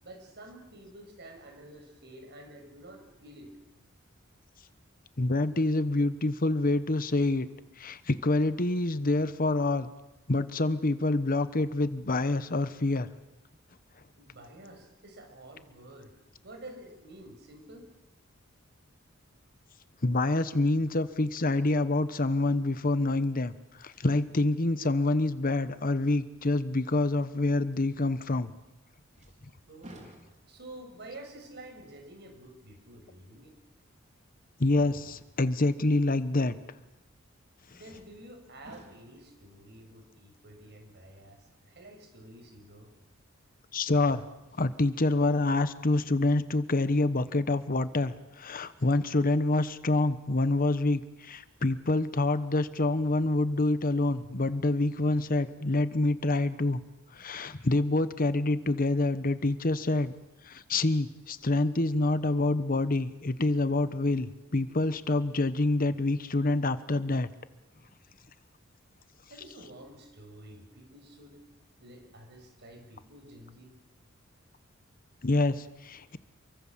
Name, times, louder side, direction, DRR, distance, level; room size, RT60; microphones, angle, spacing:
voice 1, 0.0-3.5 14.2-16.1 16.4-17.9 29.7-30.1 30.5-33.6 37.7-42.9 69.3-71.4 71.8-73.7, right 1 dB, 55° right, 4 dB, 6.6 m, -49 dB
voice 2, 5.2-7.5 7.8-9.9 10.3-13.1 20.0-23.5 23.8-28.5 34.6-36.6 37.7-37.9 43.7-44.2 44.5-56.8 57.1-60.1 60.4-67.3 75.2-76.2, left 2 dB, 45° left, 13 dB, 1.1 m, -27 dB
sound 1, 28.4-28.8 29.1-30.7 31.4-31.5 33.3-33.4 34.6-35.6 37.9-38.3 38.6-39.4 42.4-42.5 43.9-44.7 45.2-45.3, right 1 dB, 35° right, 4.1 m, -54 dB
28.5 x 23.5 x 7.5 m, 1.0 s
head